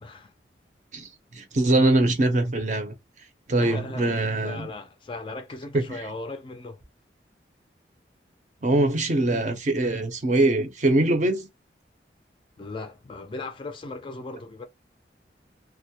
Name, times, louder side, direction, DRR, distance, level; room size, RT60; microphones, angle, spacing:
voice 1, 0.0-0.3 3.6-6.8 12.6-14.7, left 3 dB, 30° left, 0.3 m, -37 dB
voice 2, 0.9-2.9 3.5-4.7 5.7-6.0 8.6-11.5, right 2 dB, 45° right, 0.5 m, -23 dB
2.2 x 2.0 x 2.7 m
head